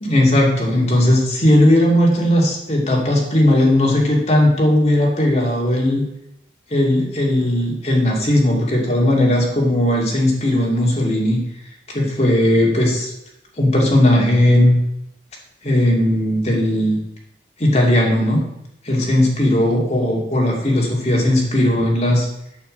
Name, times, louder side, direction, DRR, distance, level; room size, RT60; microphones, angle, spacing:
voice 1, 0.0-6.0 6.7-11.4 11.9-13.1 13.6-14.8 15.6-17.0 17.6-18.4 18.8-22.3, left 1 dB, 35° left, -1 dB, 2.4 m, -17 dB
8.8 x 5.8 x 7.8 m, 0.82 s
head